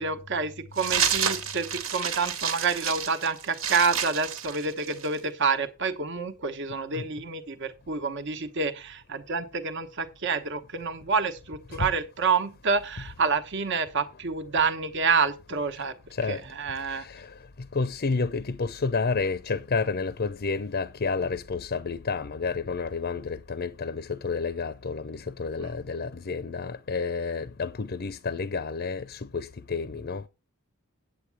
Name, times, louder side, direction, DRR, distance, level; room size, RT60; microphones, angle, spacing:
voice 1, 0.0-15.9 16.3-17.0 25.6-25.7, right 4 dB, 55° right, 1.1 m, -28 dB
sound 1, 0.8-5.2, right 7 dB, 75° right, 1.4 m, -30 dB
voice 2, 16.1-16.4 16.8-17.3 17.7-30.3, left 4 dB, 45° left, 0.6 m, -30 dB
8.5 x 8.4 x 4.7 m
head